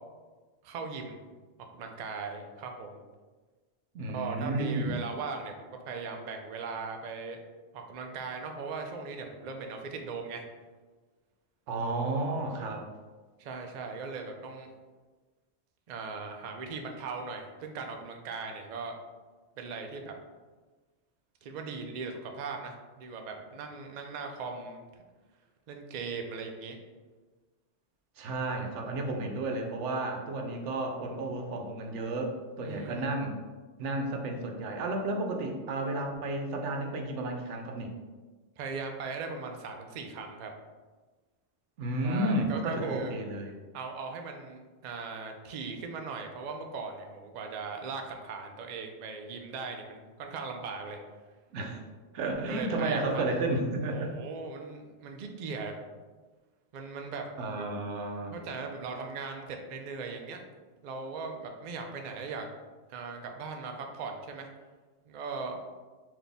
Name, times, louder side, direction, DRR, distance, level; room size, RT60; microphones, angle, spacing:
voice 1, 0.6-1.2 1.7-3.0 4.1-7.4 7.7-10.4 13.4-14.7 15.9-19.0 19.6-20.1 21.4-24.8 25.7-26.8 32.6-33.1 38.6-40.5 42.0-43.1 43.7-51.0 52.5-53.2 53.9-55.8 56.7-57.7 58.3-60.4 60.8-62.5 62.9-64.5 65.1-65.6, right 4 dB, 55° right, 3 dB, 0.5 m, -39 dB
voice 2, 3.9-5.0 11.7-12.9 28.2-33.4 33.8-37.9 41.8-43.5 51.5-51.8 52.1-54.1 57.4-58.4, right 2 dB, 90° right, 3 dB, 1.0 m, -32 dB
4.0 x 2.7 x 3.4 m, 1.3 s
omnidirectional pair, 1.2 m